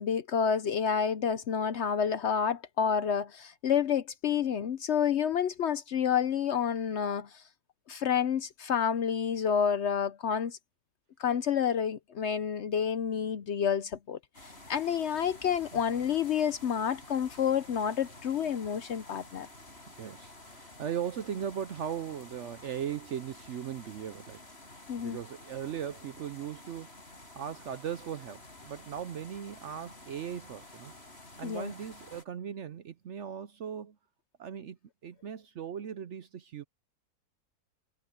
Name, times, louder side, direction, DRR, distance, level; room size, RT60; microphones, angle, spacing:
voice 1, 0.0-7.4 7.9-10.6 11.2-19.5 24.9-25.2 31.4-31.7, left 7 dB, 60° left, 0.8 m, -29 dB
sound 1, 14.3-32.2, left 2 dB, 40° left, 7.3 m, -51 dB
voice 2, 20.0-26.9 27.3-30.9 31.4-34.0 34.4-36.6, right 9 dB, 60° right, 0.8 m, -38 dB
omnidirectional pair, 1.6 m